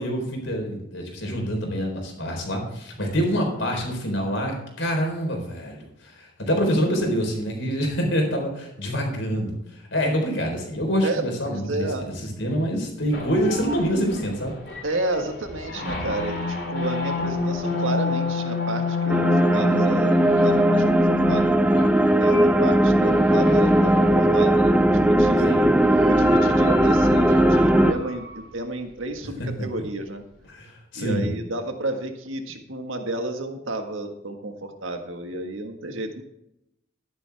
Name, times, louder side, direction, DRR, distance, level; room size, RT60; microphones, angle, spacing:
voice 1, 0.0-11.9 12.4-14.5 25.4-25.8 30.5-31.3, equal, 75° left, 2 dB, 4.0 m, -26 dB
voice 2, 11.0-12.1 14.8-21.6 22.0-25.5 26.0-30.2 30.9-36.2, right 2 dB, 90° right, 5 dB, 1.7 m, -31 dB
sound 1, 13.1-24.9 25.8-28.4, left 3 dB, 60° left, 3.3 m, -29 dB
sound 2, 19.1-27.9, right 1 dB, 5° right, 0.5 m, -18 dB
13.0 x 11.0 x 3.5 m, 0.82 s
head